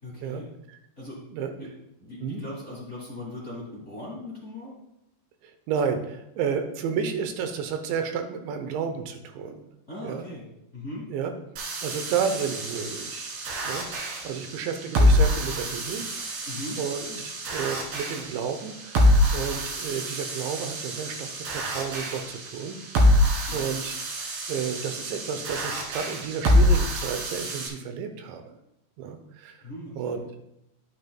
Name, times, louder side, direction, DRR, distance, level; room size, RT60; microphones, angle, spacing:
voice 1, 0.0-0.5 1.0-1.2 1.6-1.7 2.0-4.7 9.9-10.4 10.7-11.1 16.5-17.2 23.5-23.6 29.6-30.2, left 1 dB, 85° left, -6 dB, 0.6 m, -39 dB
voice 2, 1.2-1.5 2.2-2.4 5.4-9.6 10.0-10.3 11.1-11.3 11.8-13.3 13.7-13.9 14.2-16.1 16.8-22.8 23.0-23.1 23.5-24.2 24.5-28.6 29.0-29.7 30.0-30.2, right 7 dB, 90° right, 7 dB, 3.2 m, -31 dB
sound 1, 11.6-27.7, left 1 dB, 65° right, 3.3 m, -26 dB
11.5 x 9.1 x 2.3 m, 0.84 s
omnidirectional pair, 5.0 m